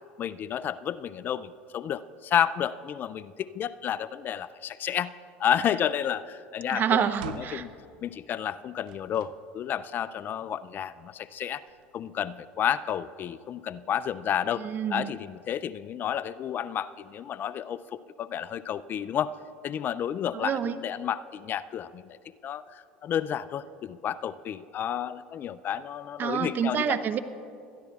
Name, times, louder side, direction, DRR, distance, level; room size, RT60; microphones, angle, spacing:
voice 1, 0.2-5.1 5.4-7.7 8.0-11.6 11.9-19.3 19.6-22.2 22.4-27.0, left 9 dB, 45° left, 16 dB, 0.3 m, -31 dB
voice 2, 6.7-7.6 14.6-15.1 20.3-20.7 26.2-27.2, right 8 dB, 45° right, 12 dB, 0.7 m, -27 dB
sound 1, 7.1-7.8 8.8-9.4 10.0-10.1 11.4-12.2, right 10 dB, 80° right, 0.5 m, -43 dB
20.5 x 13.5 x 2.4 m, 2.4 s
hypercardioid pair, 85°, 5 cm